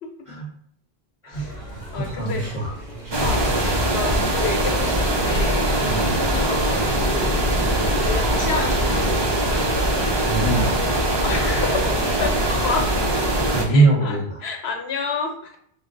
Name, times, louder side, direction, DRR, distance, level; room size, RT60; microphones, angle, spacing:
voice 1, 1.2-2.6 3.2-3.4 3.9-5.8 6.1-7.4 8.1-9.4 11.2-12.9 13.7-15.6, left 5 dB, 85° left, 3 dB, 1.1 m, -30 dB
sound 1, 1.3-9.7, right 1 dB, 55° right, 1.4 m, -37 dB
voice 2, 2.0-2.7 3.2-3.3 5.8-6.1 10.0-10.8 13.5-14.4, right 3 dB, 35° left, -4 dB, 0.8 m, -22 dB
sound 2, 3.1-13.6, right 1 dB, 35° right, 0.4 m, -21 dB
5.0 x 2.1 x 3.8 m, 0.66 s
omnidirectional pair, 1.0 m